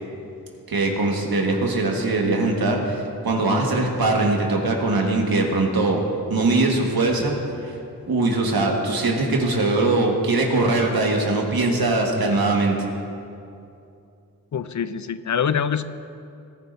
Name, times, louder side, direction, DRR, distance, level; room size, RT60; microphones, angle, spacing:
voice 1, 0.7-6.0 6.3-7.3 7.6-7.7 8.1-12.8, right 2 dB, 85° right, 0 dB, 1.6 m, -21 dB
voice 2, 14.5-15.8, left 7 dB, 55° left, 13 dB, 0.5 m, -24 dB
18.0 x 10.5 x 2.7 m, 2.6 s
wide cardioid pair, 80°, 36 cm